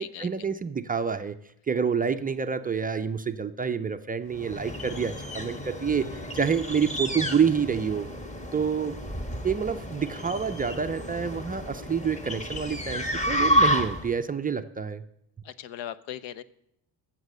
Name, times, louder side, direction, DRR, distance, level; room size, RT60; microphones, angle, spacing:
voice 1, 0.0-1.4 1.7-8.1 8.5-9.0 9.4-15.0, right 6 dB, 20° right, 8 dB, 0.4 m, -28 dB
sound 1, 4.3-14.2, equal, 15° left, 1.1 m, -30 dB
voice 2, 15.4-16.4, left 10 dB, 75° left, 15 dB, 0.8 m, -38 dB
14.5 x 7.5 x 6.5 m, 0.78 s
cardioid pair, 115°, 45 cm